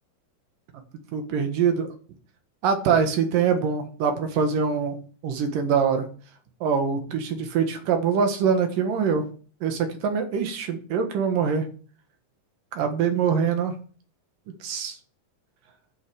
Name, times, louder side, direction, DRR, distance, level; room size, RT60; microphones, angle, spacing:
voice 1, 1.1-1.9 2.6-5.0 5.2-6.1 6.6-9.3 9.6-11.6 12.7-13.7 14.6-15.0, right 6 dB, 80° right, 6 dB, 3.1 m, -24 dB
9.1 x 6.6 x 7.0 m, 0.41 s
omnidirectional pair, 3.8 m